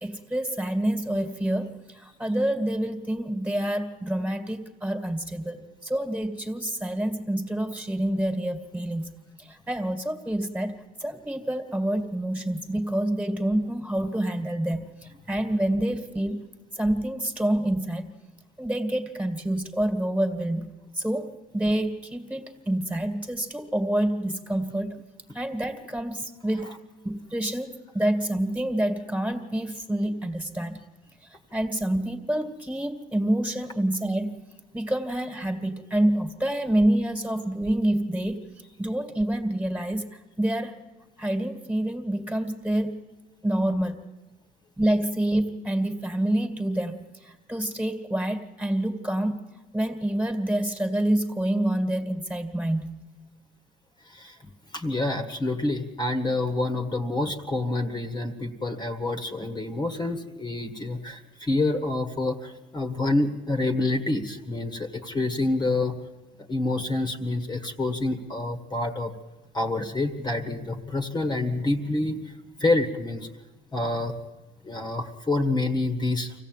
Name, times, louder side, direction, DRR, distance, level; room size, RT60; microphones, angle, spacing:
voice 1, 0.0-9.1 9.4-14.9 15.3-16.4 16.8-18.1 18.6-25.0 25.3-26.7 27.0-30.8 31.5-34.4 34.7-38.4 38.8-40.7 41.2-43.0 43.4-44.0 44.8-49.4 49.7-53.0, right 1 dB, 10° right, 7 dB, 2.2 m, -27 dB
voice 2, 54.1-54.4 54.7-66.0 66.5-69.1 69.5-72.3 72.6-73.3 73.7-74.2 74.6-76.3, left 2 dB, 25° left, 6 dB, 1.7 m, -27 dB
25.0 x 16.0 x 9.3 m, 1.2 s
cardioid pair, 110°, 17 cm